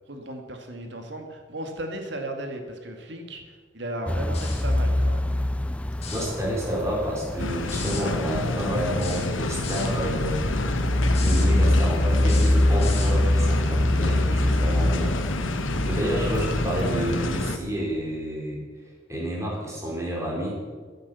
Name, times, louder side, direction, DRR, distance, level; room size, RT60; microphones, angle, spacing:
voice 1, 0.1-5.3, right 1 dB, 65° right, 4 dB, 2.1 m, -36 dB
sound 1, 4.1-17.6, left 1 dB, 5° left, 0.3 m, -25 dB
sound 2, 4.3-4.7 5.9-6.3 7.7-8.1 9.0-9.9 11.1-11.5 12.2-13.2, left 5 dB, 30° left, 2.6 m, -37 dB
voice 2, 6.1-10.8 11.1-15.2 15.8-18.6 19.1-20.6, equal, 15° right, -3 dB, 4.3 m, -29 dB
sound 3, 7.4-17.6, left 2 dB, 85° left, 1.2 m, -28 dB
14.5 x 10.5 x 7.0 m, 1.6 s
head